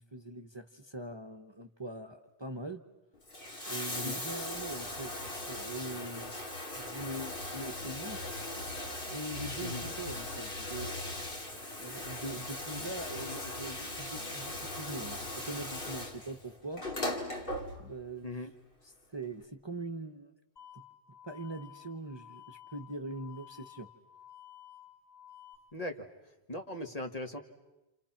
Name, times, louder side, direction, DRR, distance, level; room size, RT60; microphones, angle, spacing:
voice 1, 0.0-2.8 3.7-6.4 6.8-8.2 9.1-11.1 11.8-16.8 17.8-18.3 18.8-20.3 20.7-20.8 21.2-23.9, right 2 dB, 25° right, 5 dB, 1.1 m, -42 dB
Bathtub (filling or washing), 3.1-18.1 19.2-19.3, left 1 dB, 55° left, 2.6 m, -39 dB
voice 2, 9.6-9.9 18.2-18.5 25.7-26.1 26.5-27.4, left 1 dB, 35° left, 5 dB, 1.9 m, -39 dB
sound 1, 20.6-25.6, left 11 dB, 80° left, 2.5 m, -53 dB
29.0 x 28.5 x 5.9 m, 0.96 s
omnidirectional pair, 1.1 m